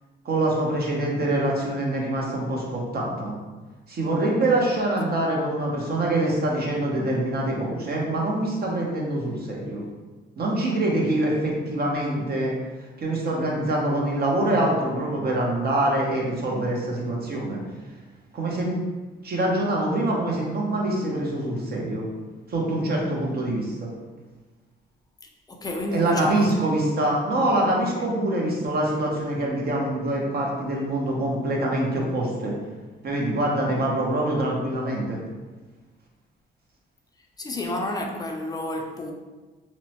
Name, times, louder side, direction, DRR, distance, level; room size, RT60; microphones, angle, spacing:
voice 1, 0.2-3.4 3.9-9.8 10.4-12.5 13.0-17.6 18.3-18.8 19.2-22.1 22.5-23.9 25.9-32.5 33.0-35.2, right 1 dB, 50° right, -2 dB, 0.7 m, -25 dB
voice 2, 25.5-26.5 28.0-28.1 37.4-39.1, left 1 dB, 20° left, 2 dB, 0.4 m, -30 dB
2.9 x 2.0 x 2.8 m, 1.2 s
cardioid pair, 90°, 20 cm